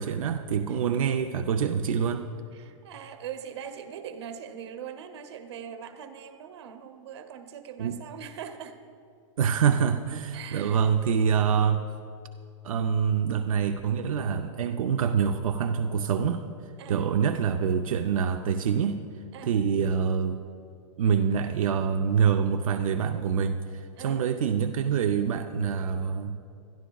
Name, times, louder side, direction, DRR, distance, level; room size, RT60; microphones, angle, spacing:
voice 1, 0.0-2.3 7.8-8.0 9.4-11.8 12.6-16.4 16.9-19.0 19.5-20.4 21.0-26.4, right 7 dB, 80° right, 6 dB, 0.6 m, -25 dB
voice 2, 2.5-8.8 10.3-10.8 11.3-11.6 16.8-17.0 19.3-19.5 24.0-24.2, right 8 dB, 55° right, 9 dB, 0.9 m, -41 dB
21.5 x 12.0 x 2.3 m, 2.5 s
supercardioid pair, 175°, 17 cm